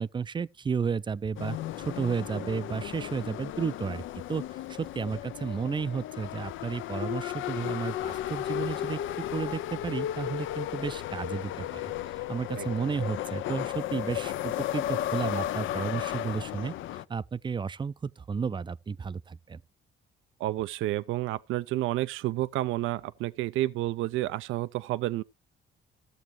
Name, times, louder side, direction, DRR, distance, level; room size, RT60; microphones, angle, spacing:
voice 1, 0.0-4.0 4.3-19.6, right 6 dB, 25° right, 0.4 m, -33 dB
sound 1, 1.4-17.0, left 12 dB, 80° left, 0.6 m, -34 dB
voice 2, 20.4-25.2, right 16 dB, 85° right, 0.4 m, -30 dB
14.5 x 7.2 x 3.0 m
cardioid pair, 90°, 20 cm